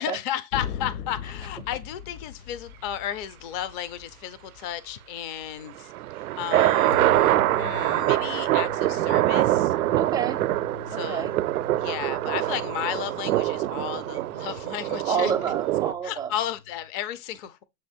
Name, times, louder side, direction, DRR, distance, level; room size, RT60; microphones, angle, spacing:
voice 1, 0.0-5.9 6.4-9.7 10.9-11.3 11.8-15.3 16.0-17.6, left 11 dB, 35° left, 0.6 m, -33 dB
sound 1, 0.5-5.6 6.9-16.9, left 7 dB, 75° left, 0.7 m, -42 dB
sound 2, 5.8-15.9, right 15 dB, 75° right, 0.5 m, -24 dB
voice 2, 10.0-10.4 10.9-11.3 15.1-16.3, right 7 dB, 10° right, 0.4 m, -28 dB
7.7 x 3.0 x 4.3 m
hypercardioid pair, 115°, 44 cm